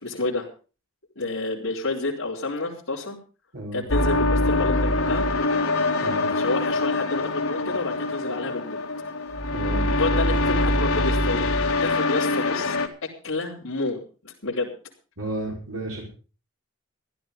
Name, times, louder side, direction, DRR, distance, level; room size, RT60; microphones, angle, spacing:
voice 1, 0.0-0.5 1.2-3.2 3.7-5.3 6.0-8.8 10.0-12.8 13.0-14.7, left 3 dB, 65° left, -7 dB, 3.8 m, -29 dB
sound 1, 3.9-12.9, left 2 dB, 80° left, 2.2 m, -24 dB
voice 2, 9.5-9.9 15.2-16.0, right 1 dB, 75° right, -2 dB, 5.0 m, -32 dB
15.0 x 12.0 x 5.4 m, 0.37 s
head